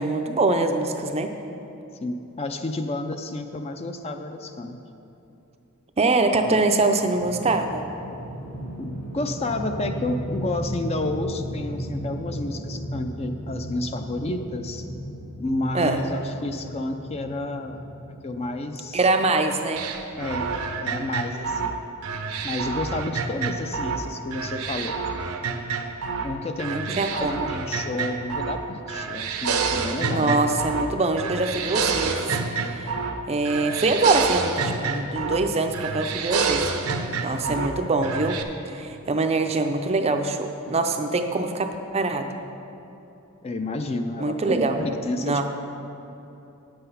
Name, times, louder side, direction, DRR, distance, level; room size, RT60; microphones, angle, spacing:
voice 1, 0.0-1.3 6.0-7.8 15.7-16.0 18.9-19.8 26.7-27.5 30.1-32.9 33.3-36.7 37.2-38.4 38.7-42.3 44.2-44.8 45.2-45.4, right 3 dB, 30° right, 6 dB, 0.5 m, -24 dB
voice 2, 2.0-4.8 6.4-6.6 8.8-14.9 15.4-17.8 18.2-19.0 20.2-21.8 22.4-25.0 26.2-30.4 37.2-37.6 43.4-45.5, left 2 dB, 25° left, 6 dB, 0.4 m, -31 dB
sound 1, 7.2-19.4, equal, 65° left, 1.7 m, -35 dB
sound 2, 19.8-24.0 24.3-26.3 26.6-28.6 28.9-30.9 31.2-33.2 33.4-35.5 35.7-37.7 38.0-38.4, right 5 dB, 75° right, 0.7 m, -28 dB
8.9 x 7.8 x 5.5 m, 2.9 s
head